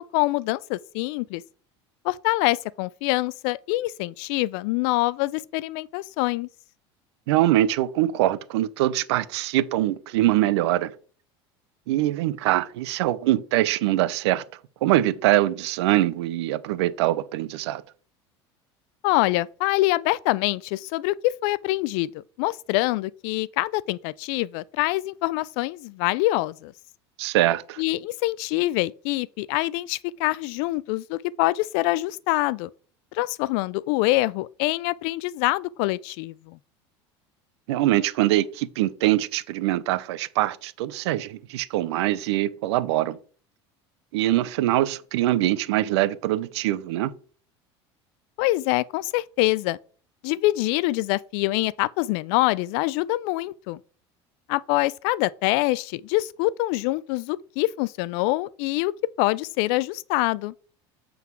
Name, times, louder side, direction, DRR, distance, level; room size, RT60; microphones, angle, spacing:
voice 1, 0.0-1.4 2.0-6.5 19.0-22.1 22.4-26.7 27.8-32.7 33.1-36.6 48.4-49.8 50.2-53.8 54.5-58.9 59.2-60.5, left 19 dB, 65° left, 0.4 m, -25 dB
voice 2, 7.3-10.9 11.9-14.4 14.8-17.8 27.2-27.8 37.7-43.2 44.1-47.1, right 15 dB, 75° right, 0.5 m, -23 dB
8.0 x 3.9 x 4.6 m
hypercardioid pair, 85°, 14 cm